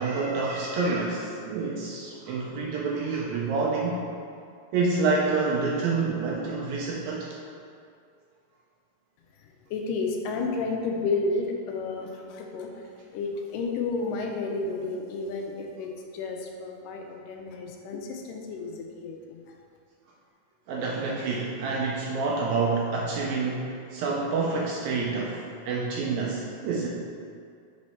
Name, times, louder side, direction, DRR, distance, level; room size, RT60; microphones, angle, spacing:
voice 1, 0.0-4.0 4.7-7.3 20.7-26.9, right 4 dB, 80° right, -3 dB, 1.7 m, -28 dB
voice 2, 9.4-12.9 13.1-19.5, left 3 dB, 85° left, 2 dB, 2.2 m, -32 dB
7.2 x 3.2 x 4.2 m, 2.3 s
omnidirectional pair, 3.7 m